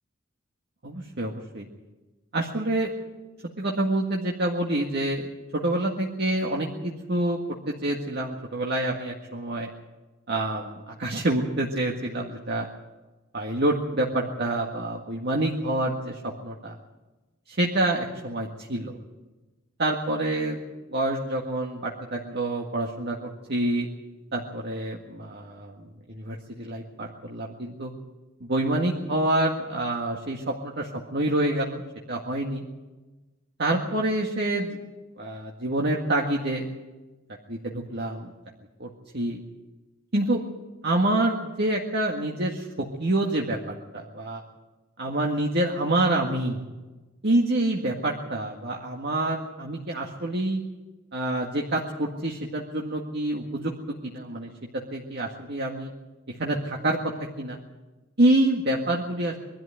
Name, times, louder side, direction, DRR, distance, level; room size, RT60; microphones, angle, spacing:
voice 1, 0.8-1.7 2.3-2.9 3.6-5.3 5.5-7.4 7.7-9.7 10.3-12.7 13.3-16.8 17.5-18.9 19.8-20.6 20.9-23.9 24.3-25.7 26.1-27.9 28.4-31.8 32.1-32.6 33.6-34.8 35.2-36.7 37.5-38.3 38.8-38.9 39.1-39.4 40.1-40.4 40.8-42.7 43.0-43.6 43.9-44.4 45.0-46.6 47.2-50.6 51.1-54.5 54.9-55.9 56.3-57.6 58.2-59.4, right 1 dB, 55° right, 0 dB, 1.9 m, -27 dB
22.5 x 12.5 x 9.5 m, 1.2 s
head